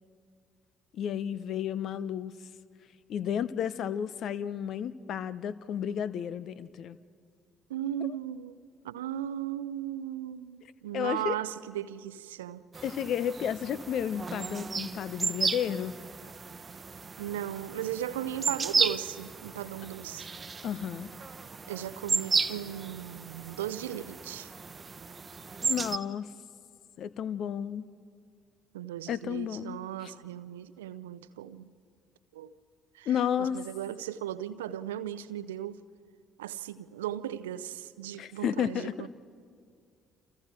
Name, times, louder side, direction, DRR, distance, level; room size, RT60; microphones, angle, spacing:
voice 1, 0.9-2.3 3.1-7.0 8.0-8.1 10.9-11.4 12.8-15.9 20.6-21.1 25.6-26.3 27.0-27.9 29.1-30.1 33.1-33.6 38.2-39.1, left 9 dB, 55° left, 0.7 m, -32 dB
voice 2, 7.7-8.6 8.8-12.6 17.2-20.3 21.7-24.5 28.7-31.7 32.3-32.5 32.9-33.1 33.4-35.8 36.4-39.1, right 11 dB, 75° right, 0.6 m, -37 dB
sound 1, 12.7-26.0, right 5 dB, 30° right, 0.8 m, -34 dB
29.0 x 28.0 x 4.5 m
figure-of-eight pair, 50°, 0 cm